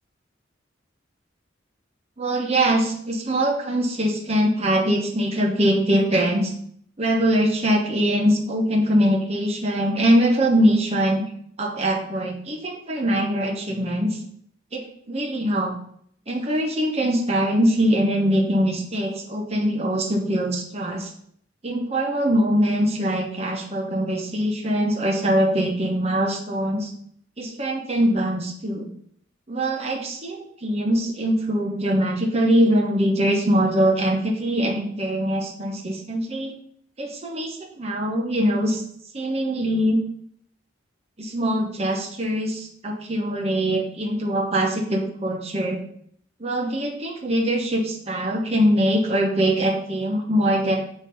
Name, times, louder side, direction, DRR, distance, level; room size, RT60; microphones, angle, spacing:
voice 1, 2.2-6.5 7.0-11.2 11.6-14.2 14.7-15.7 16.3-21.1 21.6-26.9 27.4-28.9 29.5-36.5 37.0-38.8 39.1-40.0 41.2-45.8 46.4-50.8, equal, 35° right, 0 dB, 1.1 m, -22 dB
7.6 x 3.0 x 5.4 m, 0.63 s
head